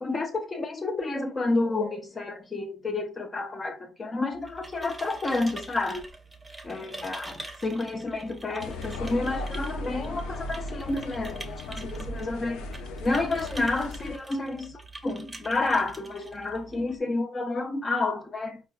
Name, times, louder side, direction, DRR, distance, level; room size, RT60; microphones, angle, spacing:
voice 1, 0.0-6.1 6.6-12.7 13.0-18.6, left 2 dB, 35° left, 0.8 m, -30 dB
sound 1, 4.3-17.0, right 2 dB, 15° right, 0.9 m, -45 dB
sound 2, 8.6-14.2, left 2 dB, 80° left, 0.5 m, -37 dB
4.4 x 2.4 x 2.4 m
hypercardioid pair, 55°, 0 cm